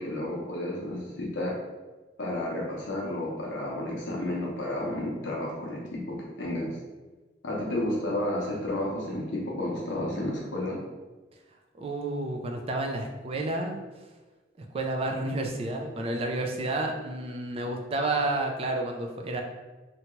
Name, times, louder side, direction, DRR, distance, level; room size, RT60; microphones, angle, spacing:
voice 1, 0.0-1.5 2.2-6.8 7.4-10.8, left 1 dB, 80° left, -4 dB, 0.7 m, -31 dB
voice 2, 11.8-13.8 14.6-19.4, right 2 dB, 30° right, 2 dB, 0.3 m, -30 dB
2.8 x 2.2 x 3.0 m, 1.2 s
head